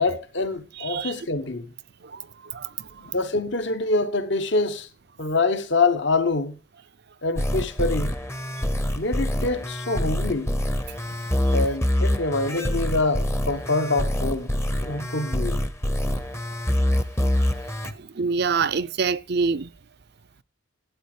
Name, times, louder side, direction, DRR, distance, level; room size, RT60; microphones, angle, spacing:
voice 1, 0.0-1.7 3.0-4.9 5.2-6.6 7.2-8.2 8.9-10.5 11.5-14.6 14.8-15.6, left 3 dB, 55° left, 1.1 m, -25 dB
voice 2, 0.8-1.1 2.0-3.1 18.0-19.7, right 5 dB, 50° right, 0.6 m, -26 dB
sound 1, 7.4-17.9, equal, 15° left, 0.8 m, -25 dB
12.5 x 8.7 x 4.9 m
head